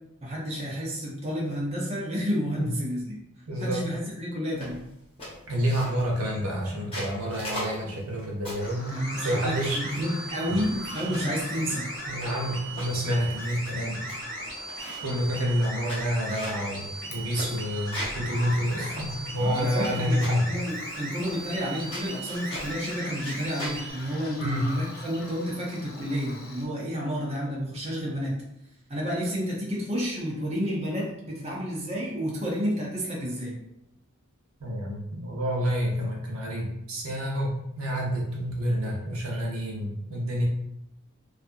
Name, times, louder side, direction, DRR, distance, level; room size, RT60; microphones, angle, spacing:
voice 1, 0.2-3.2 3.6-4.8 8.7-11.9 19.4-28.3 28.9-33.6, equal, 30° right, -5 dB, 0.6 m, -30 dB
voice 2, 3.5-3.8 5.5-10.0 10.5-10.6 11.0-11.1 12.1-14.0 15.0-20.4 24.4-24.7 34.6-40.4, equal, 85° right, -3 dB, 0.8 m, -28 dB
sound 1, 4.6-4.9 5.2-6.2 6.7-8.7 9.2-10.2 10.5-11.3 12.0-13.0 13.5-13.6 13.8-14.2 14.4-15.1 15.6-18.2 18.6-18.7 18.9-19.9 20.2-20.5 21.3-21.7 21.9-22.7 23.1-23.8, equal, 25° left, 0.9 m, -39 dB
Bird vocalization bird call bird song, 8.6-26.7, left 2 dB, 45° left, 0.5 m, -44 dB
sound 2, 9.0-23.9, right 1 dB, ahead, 1.5 m, -38 dB
2.7 x 2.4 x 2.4 m, 0.82 s
head